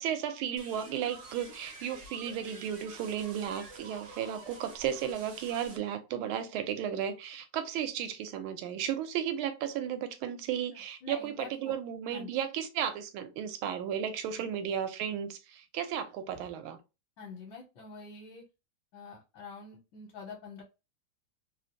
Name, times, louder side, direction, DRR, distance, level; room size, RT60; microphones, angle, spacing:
voice 1, 0.0-16.8, right 9 dB, 85° right, 1.4 m, -34 dB
sound 1, 0.6-5.8, right 3 dB, 60° right, 0.8 m, -49 dB
voice 2, 11.0-11.7 12.1-12.3 17.2-18.4 18.9-20.6, left 5 dB, 65° left, 1.4 m, -46 dB
3.3 x 2.5 x 2.5 m
omnidirectional pair, 2.2 m